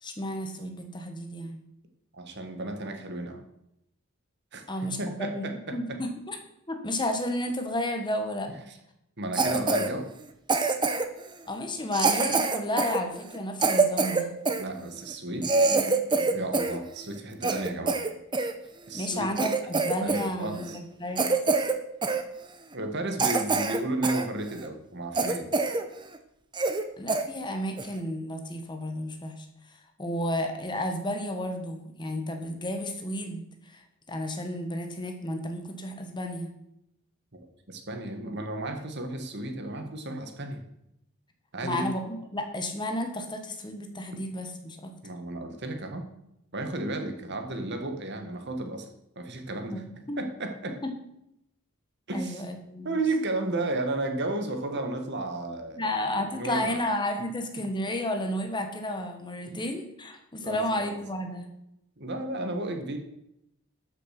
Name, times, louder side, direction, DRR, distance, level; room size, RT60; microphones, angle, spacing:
voice 1, 0.0-1.6 4.7-5.4 5.7-6.4 6.7-8.5 11.5-14.4 15.6-16.4 18.9-21.3 27.0-36.5 41.6-44.9 49.7-50.2 50.8-50.9 52.1-53.0 55.8-61.5, left 1 dB, 20° left, 5 dB, 1.3 m, -32 dB
voice 2, 2.1-3.4 4.5-4.6 5.0-5.7 9.2-10.1 14.6-15.7 16.3-18.0 18.9-19.3 20.0-20.8 22.7-25.5 37.3-37.4 37.7-40.6 41.5-41.9 45.0-46.1 46.5-48.9 49.1-49.8 50.2-50.8 52.1-52.4 52.8-55.8 56.3-56.8 59.5-59.6 60.4-61.0 62.0-63.0, right 2 dB, 50° right, 5 dB, 1.6 m, -33 dB
Cough, 9.3-9.9 10.5-11.2 11.9-14.6 15.1-15.2 15.4-16.8 17.1-18.5 19.0-19.1 19.4-20.3 20.5-20.8 21.1-21.8 22.0-22.2 22.7-22.8 23.2-24.2 24.6-24.7 25.1-25.8 26.1-26.2 26.5-26.8 27.1-27.2 27.8-28.0, right 3 dB, 20° right, 0.8 m, -25 dB
13.0 x 6.7 x 5.9 m, 0.80 s
head